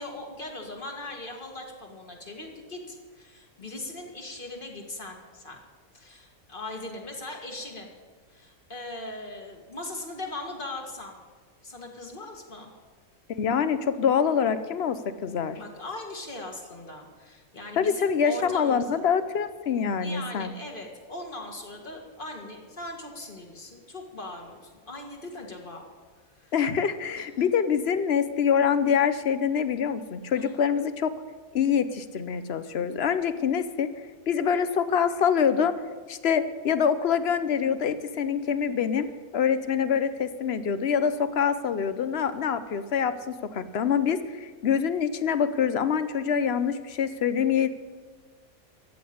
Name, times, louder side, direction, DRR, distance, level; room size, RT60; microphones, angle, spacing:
voice 1, 0.0-5.6 5.9-7.9 8.3-11.2 11.6-12.7 15.6-19.0 20.0-25.8 26.3-26.5 27.2-27.3 30.3-30.7, left 2 dB, 35° left, 2 dB, 2.1 m, -39 dB
voice 2, 13.3-15.6 17.8-20.5 26.5-31.1 31.5-33.9 34.3-35.7 36.1-39.1 39.3-47.7, left 7 dB, 55° left, 12 dB, 0.9 m, -25 dB
14.0 x 8.4 x 8.6 m, 1.4 s
omnidirectional pair, 1.5 m